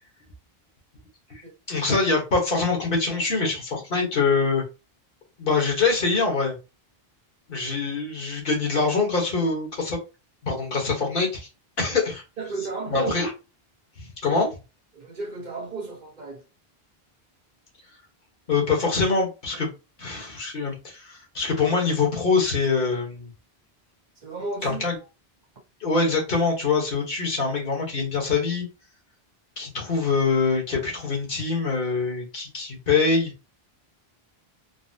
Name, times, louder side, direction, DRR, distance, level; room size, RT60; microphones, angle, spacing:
voice 1, 1.7-4.6 5.4-6.6 7.5-10.0 10.4-11.5 11.8-12.2 12.9-13.3 14.0-14.5 18.5-19.7 20.0-23.3 24.6-25.0 25.8-28.7 29.6-33.3, left 4 dB, 60° left, 1.4 m, -24 dB
voice 2, 12.4-13.1 14.9-16.4 24.2-24.8, right 3 dB, 50° right, 0.8 m, -33 dB
4.0 x 2.0 x 2.6 m
omnidirectional pair, 1.0 m